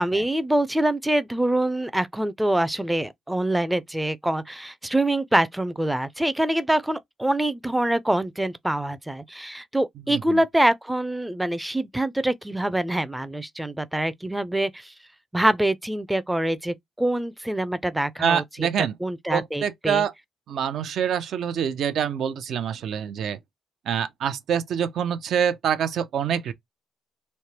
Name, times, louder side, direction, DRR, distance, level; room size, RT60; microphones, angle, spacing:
voice 1, 0.0-14.9 15.3-20.0, right 1 dB, 5° right, 0.4 m, -25 dB
voice 2, 10.1-10.4 18.2-19.0 19.3-20.1 20.5-23.4 23.9-26.5, right 8 dB, 70° right, 0.5 m, -26 dB
3.2 x 2.1 x 2.8 m
cardioid pair, 90°, 0 cm